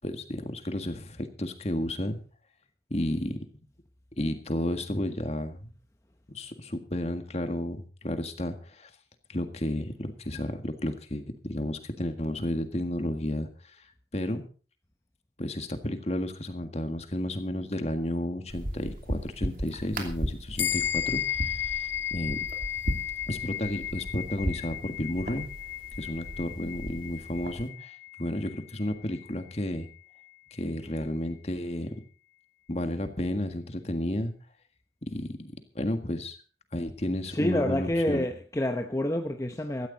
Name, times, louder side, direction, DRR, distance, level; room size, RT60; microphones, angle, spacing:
voice 1, 0.0-2.2 2.9-3.4 4.2-5.7 6.3-8.9 9.3-13.9 14.1-14.5 15.4-22.5 23.3-25.5 26.0-29.9 30.5-31.9 32.7-34.3 35.1-36.4 36.7-38.3, left 1 dB, 35° left, 1.7 m, -32 dB
sound 1, 18.5-27.7, equal, 50° right, 2.8 m, -37 dB
sound 2, 20.6-30.3, left 11 dB, 85° left, 1.1 m, -35 dB
voice 2, 37.3-39.9, left 1 dB, 15° left, 0.8 m, -28 dB
16.5 x 13.5 x 4.0 m
head